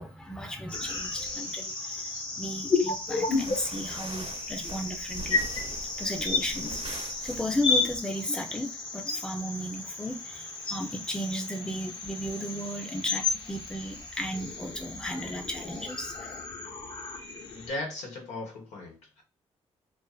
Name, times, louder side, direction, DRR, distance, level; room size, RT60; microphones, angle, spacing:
voice 1, 0.0-5.5 6.0-16.3, equal, 5° left, 3 dB, 0.6 m, -35 dB
sound 1, 0.7-17.7, left 4 dB, 45° left, 0.9 m, -33 dB
sound 2, 3.2-7.9, right 3 dB, 50° right, 0.7 m, -43 dB
voice 2, 17.4-19.2, left 2 dB, 90° left, 0 dB, 1.1 m, -38 dB
2.5 x 2.5 x 2.3 m, 0.30 s
cardioid pair, 75°, 11 cm